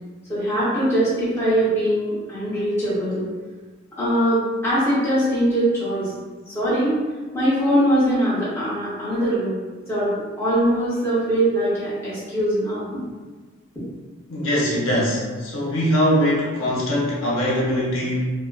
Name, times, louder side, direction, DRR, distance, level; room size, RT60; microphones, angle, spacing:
voice 1, 0.3-3.2 4.0-6.1 6.5-7.0 7.3-9.6 9.9-10.1 10.4-13.0, right 1 dB, 10° left, -11 dB, 0.7 m, -21 dB
voice 2, 14.3-18.3, equal, 80° left, -6 dB, 0.7 m, -22 dB
2.4 x 2.3 x 2.3 m, 1.4 s
head